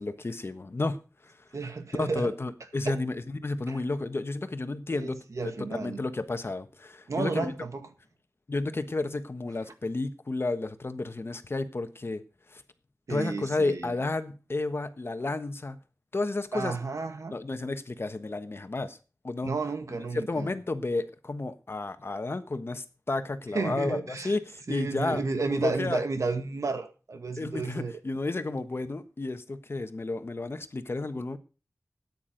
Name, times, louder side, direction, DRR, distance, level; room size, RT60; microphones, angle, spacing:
voice 1, 0.0-1.4 2.0-7.5 8.5-12.2 12.5-12.6 13.1-15.8 16.1-16.8 17.3-19.0 19.2-19.5 20.1-25.2 25.5-26.0 27.4-31.4, left 2 dB, 50° left, 1.3 m, -32 dB
voice 2, 1.5-2.3 2.9-3.0 4.9-6.0 7.1-7.9 13.1-13.9 16.5-17.3 19.4-20.5 23.5-24.3 24.7-27.9, right 3 dB, 80° right, 1.9 m, -32 dB
13.5 x 9.5 x 5.2 m
wide cardioid pair, 80°, 5 cm